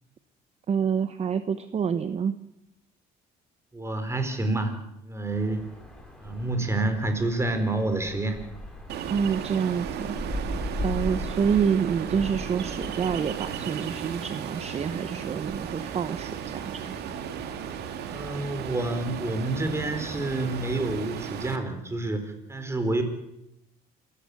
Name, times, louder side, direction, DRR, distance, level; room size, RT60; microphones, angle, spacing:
voice 1, 0.7-2.4 9.1-10.2 10.8-16.8, right 7 dB, 40° right, 12 dB, 1.0 m, -27 dB
voice 2, 3.7-4.8 5.0-5.6 6.2-8.4 18.1-23.0, right 2 dB, 15° right, 8 dB, 4.3 m, -28 dB
sound 1, 5.3-20.7, left 1 dB, 5° left, 5.2 m, -40 dB
Ocean, 8.9-21.6, right 8 dB, 75° right, 2.2 m, -35 dB
26.5 x 15.5 x 8.4 m, 0.83 s
cardioid pair, 110°, 17 cm